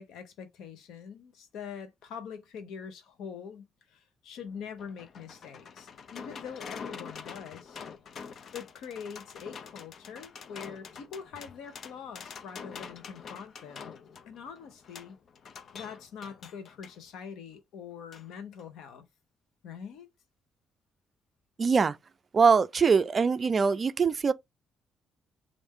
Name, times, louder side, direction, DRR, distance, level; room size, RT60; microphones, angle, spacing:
voice 1, 0.0-7.8 8.5-13.9 14.3-15.2 15.7-19.0 19.6-20.1, left 7 dB, 85° left, 0.8 m, -44 dB
sound 1, 4.4-17.0 18.1-18.3 18.6-18.7, left 6 dB, 60° left, 0.5 m, -46 dB
voice 2, 21.6-22.0 22.3-24.3, right 5 dB, 40° right, 0.4 m, -23 dB
3.2 x 2.6 x 3.6 m
cardioid pair, 90°, 0 cm